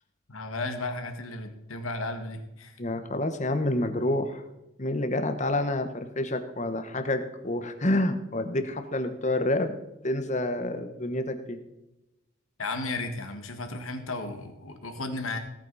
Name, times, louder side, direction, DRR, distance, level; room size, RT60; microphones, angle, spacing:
voice 1, 0.3-2.7 12.6-15.4, left 2 dB, 80° left, 6 dB, 1.9 m, -34 dB
voice 2, 2.8-4.4 4.8-9.7 10.0-11.6, left 1 dB, 35° left, 8 dB, 1.3 m, -28 dB
18.0 x 8.9 x 4.2 m, 0.92 s
head